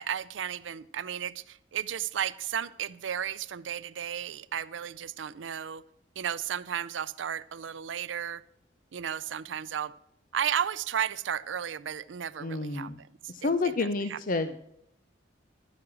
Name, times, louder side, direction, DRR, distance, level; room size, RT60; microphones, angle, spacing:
voice 1, 0.0-5.8 6.2-8.4 8.9-9.9 10.3-12.9 13.2-13.5 14.1-14.2, right 9 dB, 85° right, 16 dB, 0.5 m, -33 dB
voice 2, 12.4-13.0 13.3-14.6, left 3 dB, 50° left, 10 dB, 0.7 m, -29 dB
12.5 x 9.7 x 6.1 m, 0.77 s
head